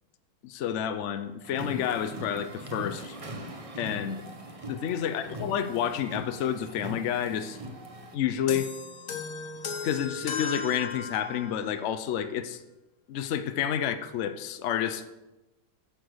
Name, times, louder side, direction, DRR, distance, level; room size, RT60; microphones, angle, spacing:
voice 1, 0.4-3.2 3.8-4.2 4.7-7.6 8.1-8.7 9.8-12.6 13.1-15.1, left 9 dB, 85° left, 10 dB, 0.6 m, -30 dB
sound 1, 1.4-8.1, equal, 40° right, 0.5 m, -41 dB
sound 2, 8.5-11.7, left 5 dB, 55° left, 1.2 m, -35 dB
9.0 x 6.8 x 6.3 m, 1.0 s
omnidirectional pair, 2.1 m